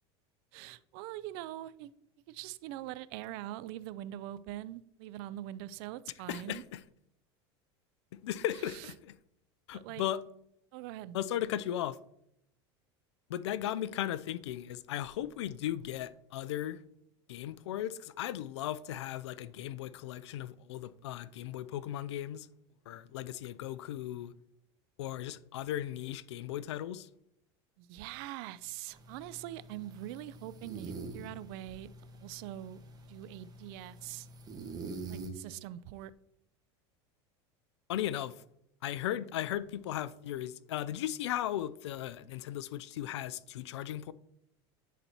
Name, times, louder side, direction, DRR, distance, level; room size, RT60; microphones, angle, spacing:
voice 1, 0.5-1.9 2.3-6.6 8.6-8.9 9.7-10.0 10.7-11.2 27.8-31.9 32.1-32.8 33.1-34.3 35.1-36.1, right 14 dB, 65° right, 0.4 m, -43 dB
voice 2, 6.3-6.8 8.2-9.1 9.7-10.2 11.1-12.0 13.3-16.8 17.3-22.5 22.9-24.3 25.0-27.1 37.9-38.3 38.8-44.1, left 12 dB, 85° left, 0.4 m, -36 dB
sound 1, 28.9-35.3, right 3 dB, 25° right, 1.2 m, -46 dB
10.0 x 4.1 x 2.8 m
supercardioid pair, 105°, 14 cm